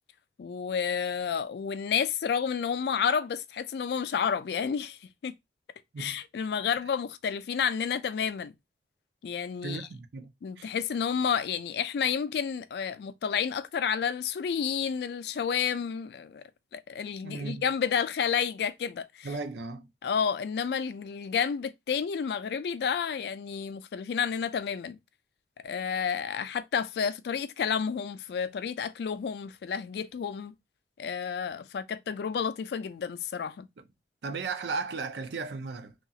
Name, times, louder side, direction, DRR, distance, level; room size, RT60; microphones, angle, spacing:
voice 1, 0.4-5.4 6.0-8.5 9.2-9.9 10.4-16.4 16.7-19.3 20.0-25.0 25.6-30.5 31.0-33.7, left 7 dB, 70° left, 0.3 m, -30 dB
voice 2, 9.6-10.7 17.2-17.7 19.2-19.9 33.8-33.9 34.2-35.9, right 4 dB, 80° right, 0.5 m, -36 dB
2.9 x 2.4 x 2.6 m
head